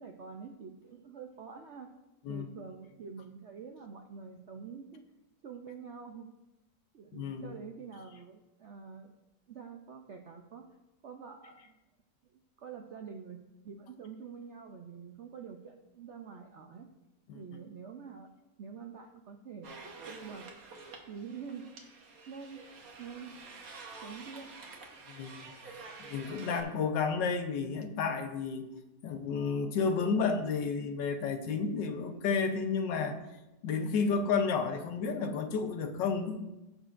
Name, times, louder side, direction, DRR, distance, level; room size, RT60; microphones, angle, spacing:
voice 1, 0.0-1.9 2.3-5.0 5.4-6.3 6.9-9.1 9.5-10.7 11.0-11.7 12.3-13.4 13.6-16.9 17.3-18.3 18.6-20.5 21.1-21.7 22.3-22.6 23.0-23.4 24.0-24.6, right 6 dB, 70° right, 4 dB, 0.6 m, -46 dB
voice 2, 7.1-7.6 17.3-17.4 25.1-25.4 26.0-28.7 29.0-33.2 33.6-36.5, left 5 dB, 80° left, 6 dB, 1.5 m, -31 dB
sound 1, 19.6-26.6, right 3 dB, 55° right, 1.5 m, -48 dB
16.5 x 6.4 x 2.5 m, 1.0 s
omnidirectional pair, 1.9 m